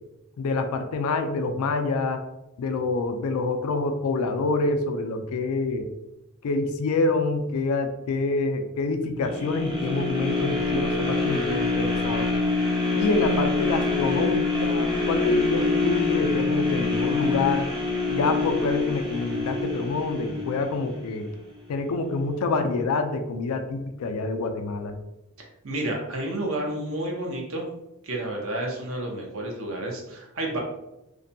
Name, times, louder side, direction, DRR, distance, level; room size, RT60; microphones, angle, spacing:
voice 1, 0.4-2.2 2.6-5.9 6.4-12.3 12.9-17.7 18.1-21.3 21.7-25.0, left 3 dB, 75° left, 7 dB, 0.3 m, -26 dB
sound 1, 9.2-21.3 21.8-21.9, left 3 dB, 20° right, 0.4 m, -26 dB
voice 2, 25.6-27.7 28.0-30.6, right 1 dB, 65° right, 0 dB, 0.6 m, -30 dB
2.5 x 2.1 x 2.6 m, 0.91 s
head